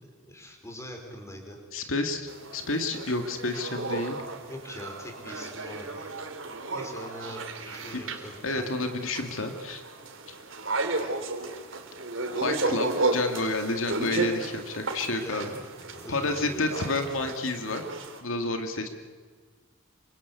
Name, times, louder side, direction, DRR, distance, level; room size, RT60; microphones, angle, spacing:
voice 1, 0.0-1.6 4.4-6.1 6.7-8.7 15.0-16.8, equal, 15° left, 3 dB, 5.1 m, -43 dB
voice 2, 1.7-4.2 7.9-8.1 8.4-9.8 10.3-10.4 12.3-15.5 16.1-17.8 18.2-18.9, left 2 dB, 80° left, 5 dB, 2.4 m, -30 dB
sound 1, 2.3-18.2, right 2 dB, 70° right, 3.4 m, -33 dB
27.5 x 25.0 x 8.4 m, 1.5 s
head